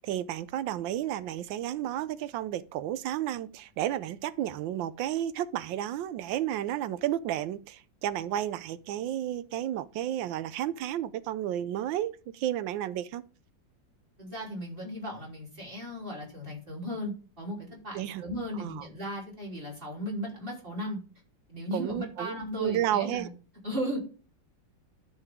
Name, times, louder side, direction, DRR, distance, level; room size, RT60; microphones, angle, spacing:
voice 1, 0.0-13.2 17.9-18.2 18.6-18.8 21.7-23.3, right 12 dB, 90° right, 1.4 m, -32 dB
voice 2, 14.2-21.0 21.5-23.3 23.6-24.0, equal, 30° right, 3.6 m, -36 dB
12.5 x 4.9 x 3.5 m
omnidirectional pair, 2.0 m